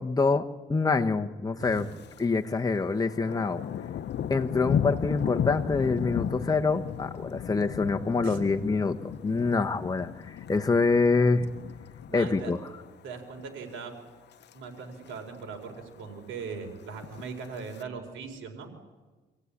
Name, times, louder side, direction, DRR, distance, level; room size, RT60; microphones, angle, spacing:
voice 1, 0.0-1.9 2.2-3.6 4.3-11.4 12.1-12.6, left 4 dB, 20° left, 4 dB, 1.2 m, -26 dB
Thunder, 1.7-2.3 2.6-12.9 13.3-13.6 14.1-14.5 14.8-14.9 15.1-15.2 15.5-16.1 16.9-17.8, left 9 dB, 60° left, 0.8 m, -35 dB
voice 2, 12.1-12.5 13.0-14.0 14.5-18.7, right 5 dB, 85° right, 3 dB, 4.3 m, -40 dB
26.0 x 15.5 x 9.9 m, 1.3 s
cardioid pair, 90°, 20 cm